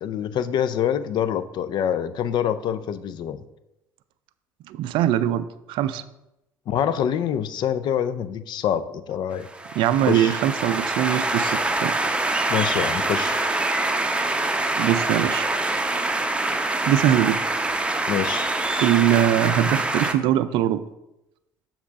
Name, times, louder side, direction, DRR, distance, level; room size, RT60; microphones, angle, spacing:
voice 1, 0.0-3.4 6.7-9.5 10.1-10.3 11.4-11.5 12.5-13.4 18.1-18.5, left 9 dB, 50° left, 13 dB, 0.5 m, -25 dB
voice 2, 4.7-6.0 9.7-12.0 14.8-15.5 16.9-17.4 18.8-20.8, right 11 dB, 60° right, 13 dB, 0.4 m, -22 dB
sound 1, 9.4-20.1, right 2 dB, 10° right, 0.7 m, -25 dB
7.1 x 3.6 x 5.8 m, 0.91 s
figure-of-eight pair, 55°, 10 cm